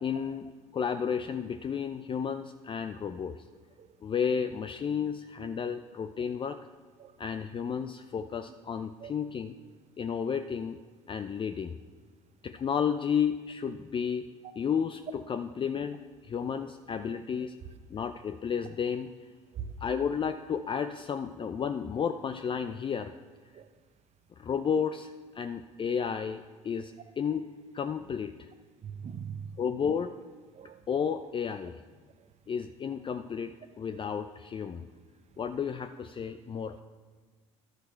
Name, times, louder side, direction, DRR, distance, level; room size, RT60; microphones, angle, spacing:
voice 1, 0.0-3.4 4.0-6.6 7.2-9.5 10.0-10.8 11.1-11.8 12.4-14.3 14.6-17.6 17.9-19.1 19.8-23.1 24.4-27.5 27.7-28.5 29.6-30.1 30.9-31.8 32.5-34.9 35.4-36.8, left 7 dB, 30° left, 0.5 m, -32 dB
voice 2, 28.8-29.5 30.5-30.8, right 8 dB, 45° right, 0.9 m, -41 dB
11.5 x 10.5 x 4.5 m
hypercardioid pair, 65°, 16 cm